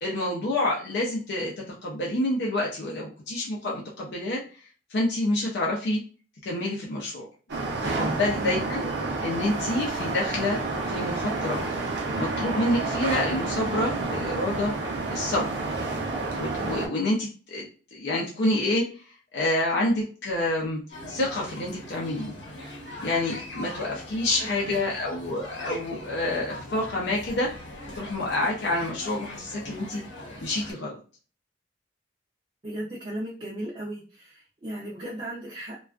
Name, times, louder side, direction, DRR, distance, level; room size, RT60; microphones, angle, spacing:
voice 1, 0.0-4.4 4.9-6.0 6.4-7.3 7.8-8.8 9.2-11.6 12.2-14.7 15.1-15.5 16.4-18.9 19.3-20.8 21.1-22.3 23.0-30.0 30.4-31.0, left 1 dB, 65° left, -3 dB, 0.5 m, -28 dB
sound 1, 7.5-16.9, right 3 dB, 75° right, 0.6 m, -29 dB
voice 2, 8.3-8.7 23.9-24.0 24.4-24.9 32.6-35.8, right 1 dB, 30° right, -5 dB, 0.4 m, -36 dB
sound 2, 20.9-30.7, left 1 dB, 80° left, 0.9 m, -41 dB
2.3 x 2.3 x 2.3 m, 0.39 s
head